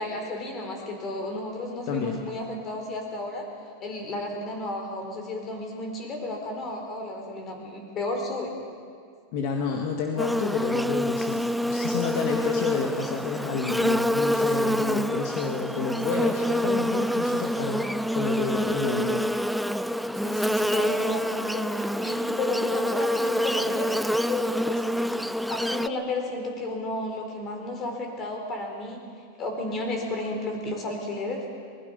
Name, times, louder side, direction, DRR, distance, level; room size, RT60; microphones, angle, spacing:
voice 1, 0.0-3.5 3.8-8.5 20.1-24.0 24.3-24.8 25.5-29.0 29.4-31.4, left 2 dB, 30° left, 2 dB, 4.5 m, -32 dB
voice 2, 1.9-2.2 9.3-19.2, left 5 dB, 55° left, 2 dB, 1.9 m, -30 dB
Buzz, 10.2-25.9, equal, ahead, 0.4 m, -26 dB
23.5 x 21.0 x 5.4 m, 2.3 s
supercardioid pair, 145°, 0 cm